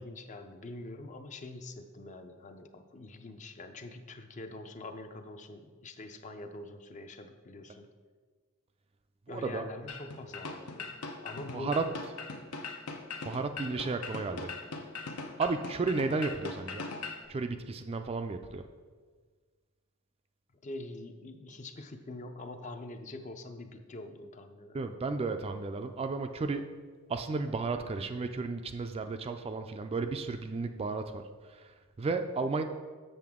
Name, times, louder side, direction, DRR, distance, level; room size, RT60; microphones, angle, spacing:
voice 1, 0.0-7.9 9.3-11.9 13.7-13.8 20.6-24.9, left 2 dB, 35° left, 7 dB, 0.5 m, -44 dB
voice 2, 9.3-9.7 11.5-11.9 13.2-14.5 15.4-16.9 17.3-18.6 24.7-26.6 27.1-32.6, right 3 dB, 25° right, 7 dB, 0.3 m, -33 dB
sound 1, 9.9-17.2, left 4 dB, 80° left, 0.7 m, -41 dB
7.7 x 6.7 x 3.6 m, 1.5 s
head